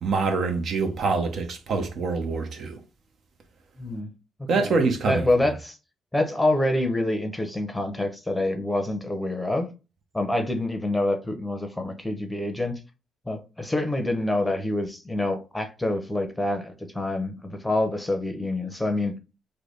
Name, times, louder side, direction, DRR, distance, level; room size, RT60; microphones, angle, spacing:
voice 1, 0.0-2.8 4.5-5.2, right 4 dB, 60° right, 0.8 m, -25 dB
voice 2, 3.8-4.1 4.5-4.7 5.1-5.8 6.1-9.7 10.1-12.7 13.3-19.1, left 1 dB, 10° left, 0.7 m, -26 dB
3.3 x 2.2 x 3.8 m
cardioid pair, 90°, 0 cm